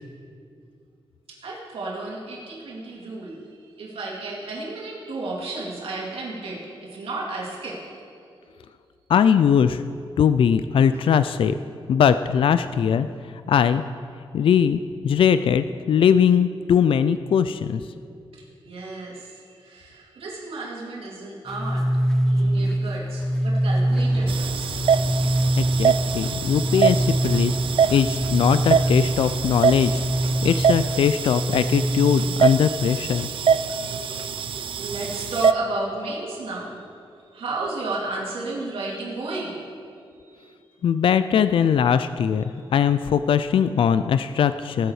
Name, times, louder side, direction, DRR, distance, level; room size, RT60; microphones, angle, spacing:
voice 1, 1.4-8.0 10.9-11.2 18.6-21.8 22.3-24.8 31.7-36.8 37.3-39.6 40.2-40.5, right 2 dB, 85° right, -5 dB, 3.0 m, -33 dB
voice 2, 9.1-9.8 10.2-11.5 11.9-13.1 13.5-13.8 14.3-17.8 25.6-27.5 27.9-33.3 40.8-42.4 42.7-44.9, left 8 dB, 65° left, 12 dB, 0.3 m, -20 dB
sound 1, 21.5-32.4, right 1 dB, 5° left, 0.6 m, -24 dB
Rain, 23.9-30.7, equal, 25° left, 3.4 m, -37 dB
sound 2, 24.3-35.5, right 7 dB, 65° right, 0.5 m, -24 dB
19.5 x 7.8 x 4.8 m, 2.5 s
wide cardioid pair, 145°, 10 cm